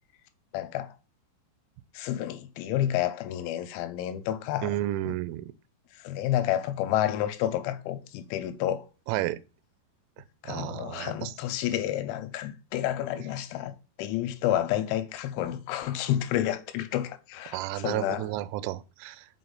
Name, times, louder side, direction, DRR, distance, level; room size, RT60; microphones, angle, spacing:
voice 1, 0.5-0.9 1.9-4.8 5.1-5.2 5.9-8.8 10.4-18.2, left 12 dB, 90° left, 3.1 m, -30 dB
voice 2, 4.6-5.5 9.1-9.4 10.4-11.3 17.5-19.3, right 15 dB, 85° right, 3.0 m, -32 dB
6.0 x 5.5 x 3.9 m
omnidirectional pair, 5.5 m